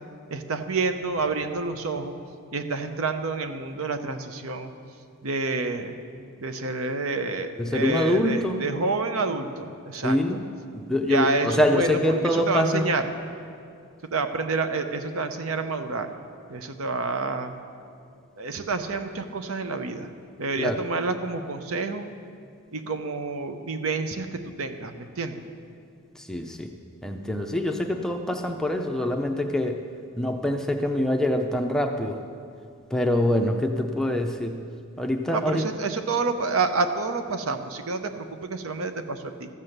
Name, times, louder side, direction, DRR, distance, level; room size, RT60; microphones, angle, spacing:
voice 1, 0.3-2.1 2.5-4.7 5.2-6.0 6.4-10.2 11.1-12.0 12.3-13.0 14.1-16.1 16.5-17.5 18.4-20.1 20.4-22.1 22.7-25.4 35.3-39.5, right 3 dB, 70° right, 8 dB, 0.7 m, -28 dB
voice 2, 7.6-8.6 10.0-10.4 10.7-12.9 20.6-20.8 26.2-26.7 27.0-29.8 30.2-32.2 32.9-34.6 35.0-35.6, left 1 dB, 5° left, 3 dB, 0.5 m, -25 dB
13.5 x 7.5 x 6.6 m, 2.3 s
head